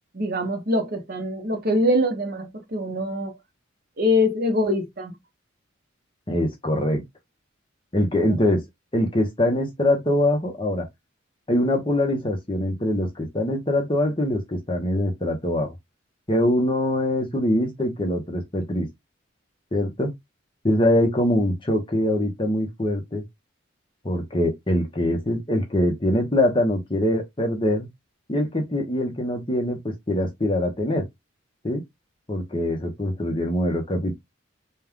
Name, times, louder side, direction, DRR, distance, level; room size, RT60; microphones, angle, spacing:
voice 1, 0.1-3.4 4.0-5.1 8.3-8.4, left 1 dB, 50° right, 0.9 m, -24 dB
voice 2, 6.3-7.0 7.9-8.6 8.9-10.9 11.5-15.7 16.3-18.9 19.7-20.1 20.6-23.2 24.0-27.9 28.3-31.0 31.6-31.8 32.3-34.2, left 1 dB, 25° left, 1.1 m, -23 dB
4.2 x 2.4 x 3.6 m
head